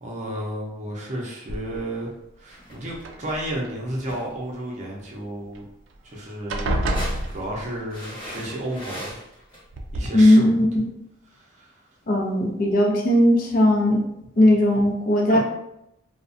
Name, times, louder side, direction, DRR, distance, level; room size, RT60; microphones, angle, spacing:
voice 1, 0.0-5.6 6.0-6.8 7.3-9.2 9.9-10.6 11.3-11.8 15.3-15.4, right 1 dB, 40° right, -3 dB, 0.6 m, -32 dB
sound 1, 1.5-2.1 2.9-3.8 5.6-5.7 5.9-6.2 6.5-7.9 9.1-9.2 9.7-10.1, right 1 dB, 85° right, 0.4 m, -28 dB
sound 2, 2.5-3.1 4.1-4.4 6.7-7.4 7.9-9.6 10.3-10.4, equal, 25° left, 0.9 m, -38 dB
voice 2, 10.1-10.9 12.1-14.0 14.4-15.4, left 1 dB, 45° left, 0 dB, 0.4 m, -18 dB
2.5 x 2.1 x 2.5 m, 0.84 s
head